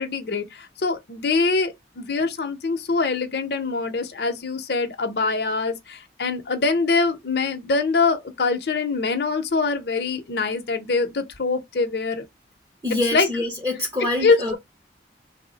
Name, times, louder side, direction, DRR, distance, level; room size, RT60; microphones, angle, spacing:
voice 1, 0.0-12.2 13.1-13.3 14.2-14.6, left 4 dB, 60° left, 0.6 m, -24 dB
voice 2, 12.8-14.6, left 2 dB, 20° right, 0.6 m, -25 dB
3.1 x 2.0 x 3.8 m
head